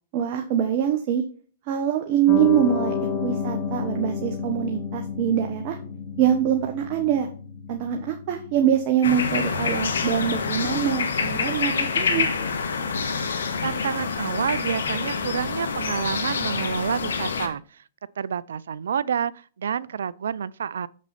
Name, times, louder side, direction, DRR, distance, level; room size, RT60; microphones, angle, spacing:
voice 1, 0.1-1.2 1.7-2.9 3.2-5.8 6.2-7.3 7.7-12.3, right 9 dB, 45° right, 1.3 m, -24 dB
Piano, 2.3-8.8, left 6 dB, 40° left, 2.9 m, -31 dB
sound 1, 9.0-17.5, left 5 dB, 85° left, 1.5 m, -27 dB
voice 2, 13.6-17.8 18.2-20.9, right 7 dB, 80° right, 0.5 m, -28 dB
7.4 x 6.1 x 4.2 m
hypercardioid pair, 125°, 0 cm